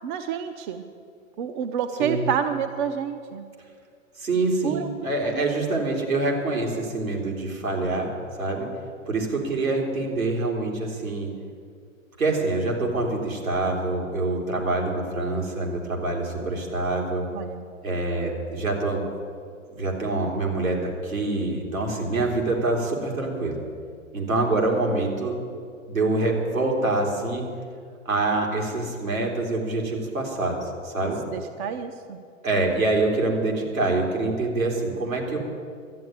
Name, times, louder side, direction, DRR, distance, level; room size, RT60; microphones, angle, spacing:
voice 1, 0.0-0.8 1.4-3.4 4.6-4.9 5.2-5.4 17.3-17.6 31.0-32.2, right 8 dB, 35° right, 7 dB, 0.7 m, -29 dB
voice 2, 4.2-8.1 8.4-8.7 9.1-11.3 12.2-17.3 17.8-19.0 19.7-23.6 24.1-25.3 25.9-27.4 28.1-31.2 32.4-35.4, right 2 dB, 80° right, -1 dB, 3.5 m, -25 dB
12.0 x 9.2 x 9.7 m, 2.2 s
figure-of-eight pair, 110°, 40 cm